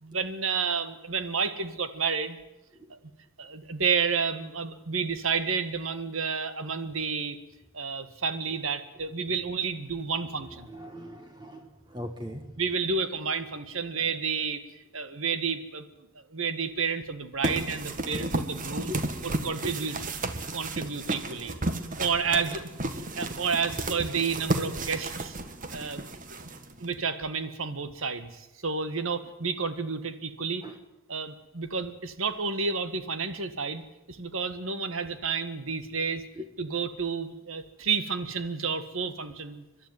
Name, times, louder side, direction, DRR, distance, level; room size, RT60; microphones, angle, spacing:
voice 1, 0.0-2.4 2.9-3.0 3.4-7.4 7.7-10.7 12.6-14.6 14.9-15.9 16.3-18.9 19.2-20.0 20.5-21.5 22.0-22.7 23.2-25.4 25.7-26.0 26.8-30.6 31.1-33.8 34.1-36.2 36.6-39.6, right 5 dB, 80° right, 11 dB, 1.8 m, -30 dB
voice 2, 10.7-12.5 18.9-19.0 30.6-30.7 36.4-36.5, left 1 dB, 20° right, 5 dB, 1.3 m, -39 dB
sound 1, 17.4-27.0, right 2 dB, 40° right, 1.6 m, -33 dB
30.0 x 12.0 x 9.6 m, 0.94 s
head